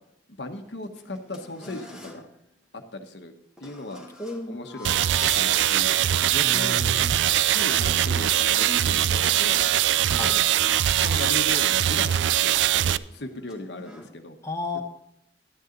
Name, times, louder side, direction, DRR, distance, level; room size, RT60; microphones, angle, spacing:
voice 1, 0.4-2.3 2.7-3.3 3.6-4.1 4.5-5.9 6.2-6.8 7.5-9.6 10.0-10.4 11.0-14.4 14.7-14.8, left 2 dB, 65° left, 6 dB, 1.2 m, -37 dB
sound 1, 0.6-2.3 3.6-5.6 6.0-6.1 6.7-6.8 7.0-8.4 9.4-11.6 12.3-12.5 12.8-14.1, left 1 dB, 5° right, 1.5 m, -43 dB
voice 2, 4.2-4.6 6.4-7.2 10.2-10.4 14.4-14.8, left 2 dB, 15° left, 2 dB, 1.0 m, -32 dB
sound 2, 4.8-13.0, right 11 dB, 75° right, 0.3 m, -22 dB
12.0 x 9.6 x 3.9 m, 0.79 s
head